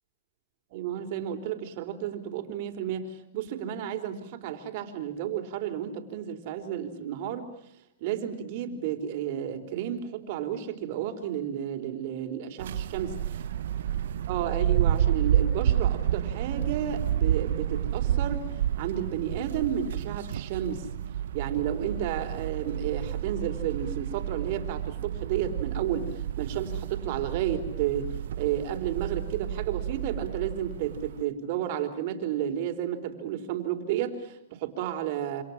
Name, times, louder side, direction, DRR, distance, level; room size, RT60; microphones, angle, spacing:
voice 1, 0.7-7.5 8.0-13.1 14.3-18.5 18.8-20.9 21.3-35.4, right 10 dB, 50° right, 6 dB, 4.3 m, -32 dB
sound 1, 12.6-31.2, right 10 dB, 70° right, 1.3 m, -30 dB
28.0 x 26.5 x 7.4 m, 0.75 s
hypercardioid pair, 140°, 0 cm